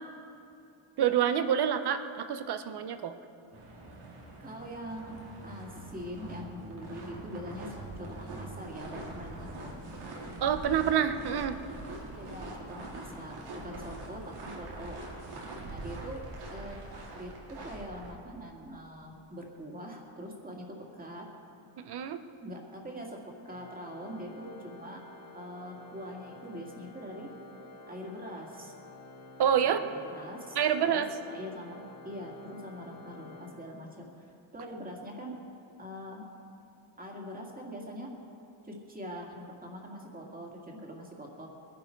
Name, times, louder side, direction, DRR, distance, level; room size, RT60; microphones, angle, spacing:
voice 1, 1.0-3.1 10.4-11.6 21.8-22.2 29.4-29.8 30.6-31.1, right 9 dB, 50° right, 10 dB, 0.9 m, -27 dB
sound 1, 3.5-18.1, right 2 dB, 90° right, 3.4 m, -43 dB
voice 2, 4.1-5.1 5.4-7.7 8.0-9.8 12.0-15.0 15.6-16.2 16.5-16.7 17.1-21.2 22.4-23.2 23.4-25.0 25.3-27.3 27.9-28.7 29.6-30.6 30.8-31.0 31.3-35.4 35.8-36.3 37.0-38.1 38.6-41.5, equal, 15° right, -1 dB, 2.3 m, -43 dB
Organ, 23.4-34.2, left 3 dB, 30° left, 2.3 m, -51 dB
21.5 x 11.0 x 4.6 m, 2.6 s
cardioid pair, 130°, 49 cm